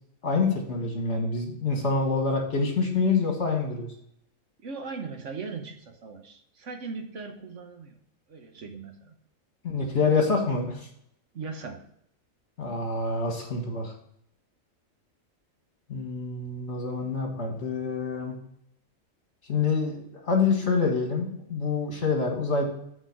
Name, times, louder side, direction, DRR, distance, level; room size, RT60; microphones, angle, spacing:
voice 1, 0.2-3.9 9.6-10.9 12.6-13.9 15.9-18.4 19.5-22.6, left 4 dB, 55° left, 2 dB, 2.0 m, -26 dB
voice 2, 4.6-8.0 8.3-9.1 11.3-11.8, right 4 dB, 65° right, 5 dB, 1.3 m, -39 dB
8.1 x 4.4 x 6.1 m, 0.72 s
omnidirectional pair, 1.4 m